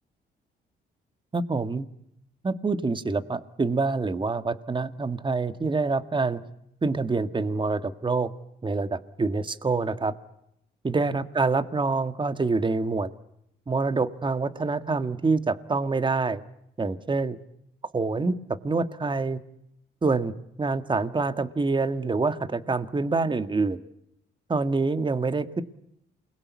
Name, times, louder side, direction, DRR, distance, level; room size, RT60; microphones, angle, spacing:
voice 1, 1.3-1.9 2.4-6.4 6.8-8.3 8.6-10.1 10.8-13.1 13.7-16.4 16.8-17.4 17.9-18.4 18.6-19.4 20.0-20.3 20.6-23.8 24.5-25.6, right 3 dB, 25° right, 11 dB, 1.7 m, -26 dB
28.5 x 22.0 x 8.4 m, 0.79 s
cardioid pair, 90°, 20 cm